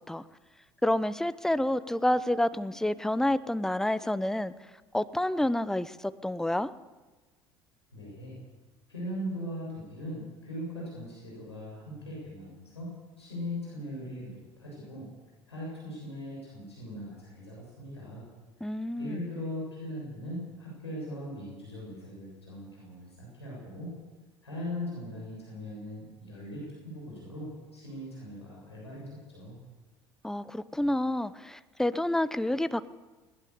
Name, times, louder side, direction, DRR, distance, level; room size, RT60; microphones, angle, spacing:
voice 1, 0.8-4.5 4.9-6.7 18.6-19.2 30.2-32.9, left 1 dB, 5° left, 15 dB, 0.9 m, -29 dB
voice 2, 7.9-8.4 8.9-12.9 13.2-15.1 15.5-18.2 18.6-23.9 24.4-29.6, equal, 85° left, -5 dB, 7.0 m, -40 dB
20.5 x 19.5 x 6.9 m, 1.2 s
figure-of-eight pair, 65°, 14 cm